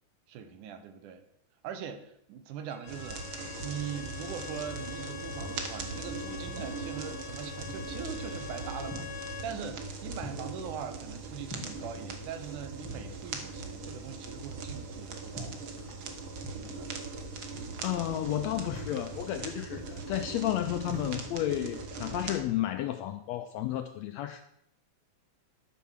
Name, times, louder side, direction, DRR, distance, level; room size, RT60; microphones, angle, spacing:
voice 1, 0.3-1.2 1.6-3.3 3.6-15.6 16.5-16.9, right 8 dB, 80° right, 9 dB, 2.4 m, -41 dB
Bowed string instrument, 2.7-9.5, left 8 dB, 65° left, 1.4 m, -44 dB
sound 1, 2.9-22.4, right 3 dB, 55° right, 1.5 m, -40 dB
sound 2, 6.0-21.8, left 1 dB, 30° left, 0.4 m, -49 dB
voice 2, 17.8-24.4, left 13 dB, 85° left, 8 dB, 1.5 m, -32 dB
12.5 x 4.6 x 7.2 m, 0.76 s
omnidirectional pair, 3.7 m